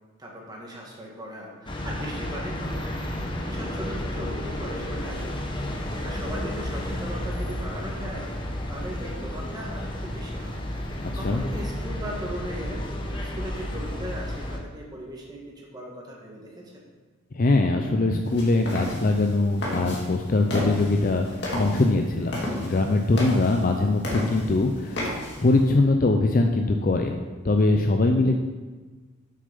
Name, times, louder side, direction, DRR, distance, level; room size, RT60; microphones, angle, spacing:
voice 1, 0.2-5.4 5.8-8.3 8.7-10.5 11.1-12.8 13.2-16.9, equal, 20° right, -2 dB, 1.7 m, -38 dB
sound 1, 1.7-14.6, left 1 dB, 25° left, 1.0 m, -32 dB
voice 2, 17.4-21.3 21.6-27.2 27.4-28.4, left 2 dB, 45° left, 4 dB, 0.5 m, -22 dB
sound 2, 18.3-25.7, left 1 dB, 60° left, 2.3 m, -33 dB
7.8 x 6.5 x 5.4 m, 1.3 s
head